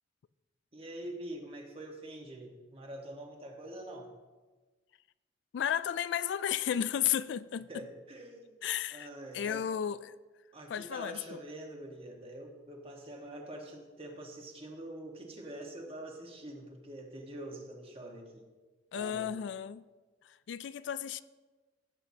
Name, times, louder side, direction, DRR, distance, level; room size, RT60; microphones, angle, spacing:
voice 1, 0.7-4.1 7.7-8.6 8.9-9.7 10.5-18.4 18.9-19.3, right 1 dB, 30° right, 1.4 m, -45 dB
voice 2, 5.5-7.7 8.6-9.1 9.3-10.1 10.7-11.4 18.9-19.8 20.5-21.2, left 9 dB, 70° left, 0.3 m, -33 dB
14.5 x 7.9 x 2.8 m
head